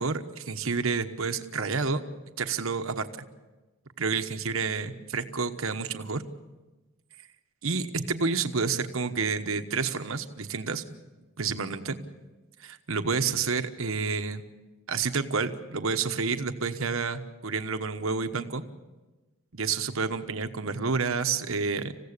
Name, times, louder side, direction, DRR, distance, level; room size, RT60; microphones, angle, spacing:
voice 1, 0.0-2.0 2.4-3.2 4.0-6.2 7.6-10.8 11.4-12.0 12.6-14.4 14.9-18.6 19.5-21.9, right 4 dB, 65° right, 8 dB, 1.2 m, -29 dB
27.5 x 16.0 x 6.8 m, 1.2 s
head